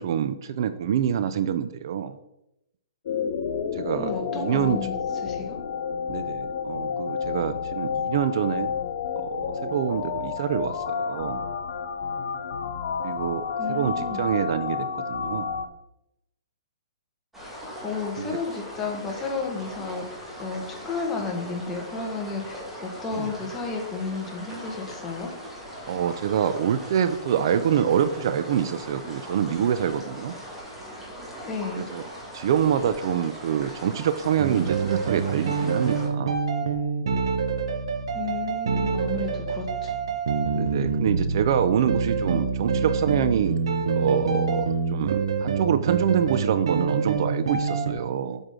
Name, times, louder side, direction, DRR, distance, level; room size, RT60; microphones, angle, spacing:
voice 1, 0.0-2.2 3.7-4.9 6.1-8.7 9.2-9.4 9.7-11.4 13.0-15.5 18.2-18.4 23.2-23.3 25.9-30.3 31.8-32.0 32.3-36.3 40.5-43.6 43.9-48.4, right 8 dB, 55° right, 12 dB, 0.5 m, -26 dB
sound 1, 3.1-15.7, left 6 dB, 60° left, 0.7 m, -30 dB
voice 2, 3.9-5.0 5.2-5.6 13.6-14.2 17.8-25.3 31.5-31.9 38.1-39.9, left 4 dB, 15° left, 0 dB, 1.5 m, -32 dB
sound 2, 17.3-36.1, equal, 5° right, 2.2 m, -40 dB
sound 3, 34.4-47.9, right 5 dB, 75° right, 1.0 m, -26 dB
8.0 x 6.1 x 3.7 m, 0.85 s
hypercardioid pair, 150°, 3 cm